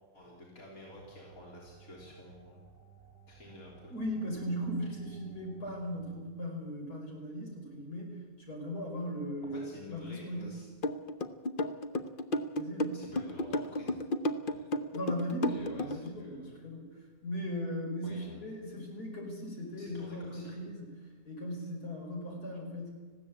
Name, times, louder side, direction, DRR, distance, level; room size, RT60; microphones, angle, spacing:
voice 1, 0.1-2.6 3.3-3.9 9.4-10.7 12.9-14.0 14.4-14.7 15.5-16.5 18.0-18.4 19.8-20.5, left 1 dB, 65° left, -3 dB, 4.2 m, -50 dB
sound 1, 0.9-6.2, right 7 dB, 10° right, 1.2 m, -58 dB
voice 2, 3.9-10.6 12.6-13.1 14.9-22.9, equal, 90° left, 0 dB, 5.8 m, -38 dB
sound 2, 10.8-16.1, left 1 dB, 40° left, 0.9 m, -32 dB
20.0 x 15.5 x 8.5 m, 1.4 s
omnidirectional pair, 1.6 m